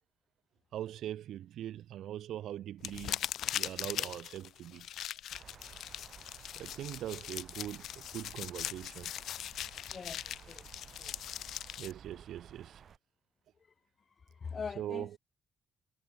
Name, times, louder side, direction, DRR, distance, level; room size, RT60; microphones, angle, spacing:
voice 1, 0.7-3.2 3.5-4.9 6.6-7.8 8.1-9.1 11.8-12.7 14.8-15.1, right 12 dB, 85° right, 0.4 m, -41 dB
sound 1, 2.8-11.9, left 11 dB, 85° left, 0.4 m, -40 dB
sound 2, 5.3-13.0, right 7 dB, 50° right, 2.9 m, -55 dB
voice 2, 9.9-10.6 11.0-11.1 14.4-15.2, left 5 dB, 35° left, 1.1 m, -42 dB
cardioid pair, 150°, 0 cm